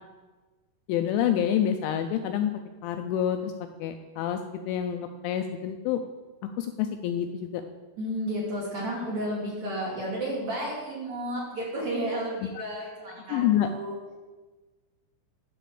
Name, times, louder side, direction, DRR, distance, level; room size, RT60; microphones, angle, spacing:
voice 1, 0.9-3.5 3.8-4.4 4.7-6.0 6.4-7.6 12.6-12.7 13.3-13.7, left 10 dB, 85° left, 6 dB, 2.8 m, -27 dB
voice 2, 8.0-13.9, right 1 dB, 45° right, -7 dB, 3.0 m, -32 dB
11.5 x 4.1 x 6.9 m, 1.2 s
omnidirectional pair, 5.7 m